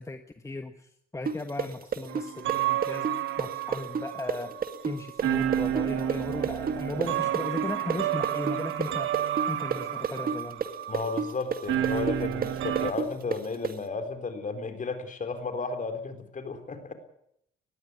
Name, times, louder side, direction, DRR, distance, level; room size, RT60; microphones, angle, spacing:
voice 1, 0.0-9.2 9.5-10.6, left 2 dB, 15° left, 8 dB, 1.3 m, -37 dB
sound 1, 1.3-8.9 9.1-13.7, right 6 dB, 45° right, 2.0 m, -30 dB
sound 2, 2.1-12.9, right 11 dB, 80° right, 1.5 m, -31 dB
voice 2, 10.9-16.9, left 4 dB, 40° left, 8 dB, 4.0 m, -33 dB
20.0 x 15.0 x 9.7 m, 0.73 s
cardioid pair, 90°, 20 cm